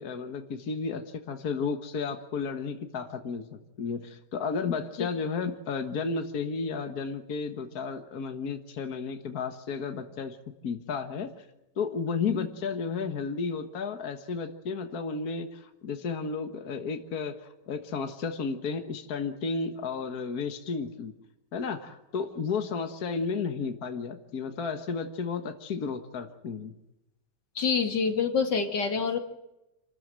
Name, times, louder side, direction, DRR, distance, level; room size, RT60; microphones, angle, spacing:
voice 1, 0.0-10.4 10.6-11.3 11.8-21.1 21.5-26.7, left 5 dB, 60° left, 6 dB, 1.9 m, -33 dB
voice 2, 27.5-29.2, left 5 dB, 85° left, 5 dB, 2.7 m, -26 dB
27.5 x 13.5 x 7.7 m, 0.94 s
omnidirectional pair, 1.8 m